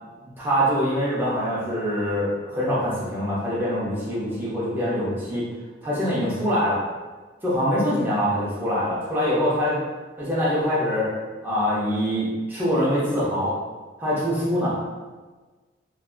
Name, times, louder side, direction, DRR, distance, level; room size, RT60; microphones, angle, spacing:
voice 1, 0.4-5.4 5.8-6.8 7.4-9.8 10.2-11.1 11.4-13.5 14.0-14.8, equal, 10° right, -8 dB, 0.7 m, -24 dB
2.7 x 2.2 x 2.2 m, 1.3 s
head